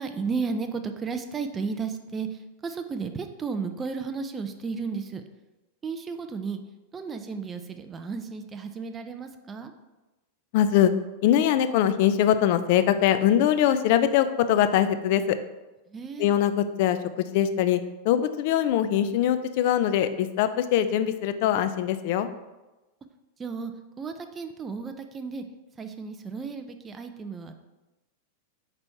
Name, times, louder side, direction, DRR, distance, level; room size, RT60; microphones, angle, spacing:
voice 1, 0.0-5.2 5.8-6.6 6.9-9.7 15.9-16.3 23.4-23.7 24.0-25.4 25.8-27.5, right 5 dB, 20° right, 7 dB, 0.5 m, -33 dB
voice 2, 10.5-10.9 11.2-15.4 16.2-17.8 18.0-22.3, left 10 dB, 55° left, 11 dB, 0.4 m, -22 dB
5.4 x 4.1 x 4.6 m, 1.1 s
supercardioid pair, 140°, 0 cm